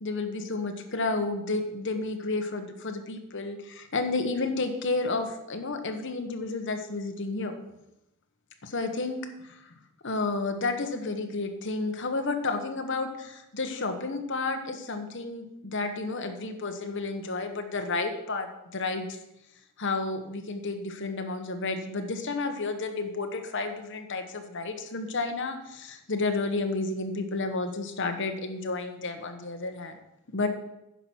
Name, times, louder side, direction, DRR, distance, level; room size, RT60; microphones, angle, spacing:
voice 1, 0.0-7.5 8.6-9.6 10.0-19.2 19.8-30.0 30.3-30.5, left 3 dB, 55° left, 6 dB, 1.2 m, -31 dB
9.8 x 5.8 x 6.2 m, 0.86 s
head